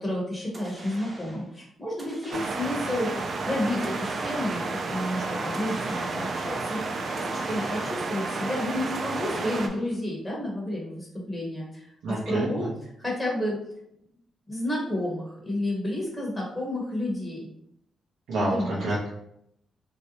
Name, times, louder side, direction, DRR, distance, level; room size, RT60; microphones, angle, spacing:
voice 1, 0.0-3.1 3.5-6.8 7.2-12.7 13.0-13.6 14.5-17.5 18.4-18.8, left 1 dB, 5° left, -3 dB, 0.7 m, -31 dB
sound 1, 0.5-1.5 2.0-3.0 3.8-4.9 5.5-6.6 7.2-8.3 8.9-10.0, right 1 dB, 25° right, 0.7 m, -46 dB
sound 2, 2.3-9.7, right 3 dB, 45° right, 0.3 m, -31 dB
voice 2, 12.0-12.7 18.3-19.1, right 1 dB, 85° right, -6 dB, 0.7 m, -28 dB
3.1 x 2.6 x 2.8 m, 0.75 s
cardioid pair, 130°, 0 cm